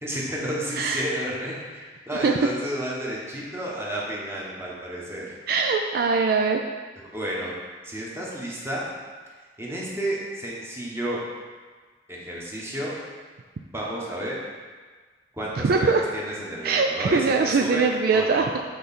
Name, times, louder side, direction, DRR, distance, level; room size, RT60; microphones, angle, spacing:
voice 1, 0.0-5.3 6.9-7.5 7.8-8.9 9.6-11.2 12.1-12.9 13.7-14.4 15.3-17.3 17.6-18.5, right 1 dB, 15° right, -5 dB, 1.3 m, -31 dB
voice 2, 5.5-6.6 15.6-16.0 16.6-18.6, right 4 dB, 55° right, 4 dB, 0.4 m, -22 dB
7.8 x 3.9 x 4.2 m, 1.4 s
head